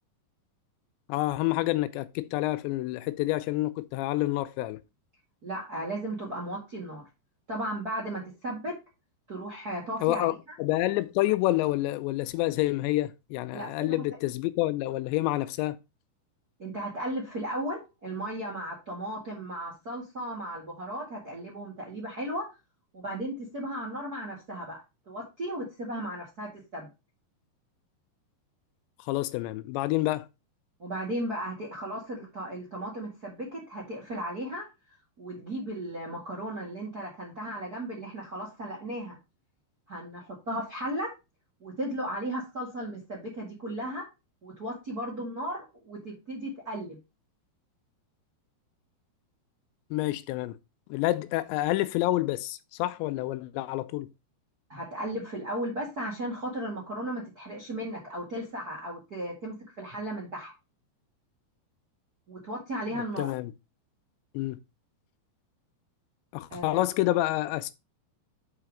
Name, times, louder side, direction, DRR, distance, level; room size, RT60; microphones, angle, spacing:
voice 1, 1.1-4.8 10.0-15.8 29.1-30.3 49.9-50.6 50.9-54.1 63.2-63.5 64.3-64.6 66.3-67.7, left 17 dB, 85° left, 2.8 m, -28 dB
voice 2, 5.4-7.0 7.5-8.7 9.3-10.3 13.5-14.0 16.6-22.5 22.9-26.9 30.8-34.7 35.2-39.2 39.9-41.1 41.6-44.1 44.4-47.0 54.7-60.5 62.3-63.3 66.5-66.8, right 1 dB, 45° right, 1.2 m, -35 dB
5.8 x 5.6 x 4.9 m
omnidirectional pair, 5.1 m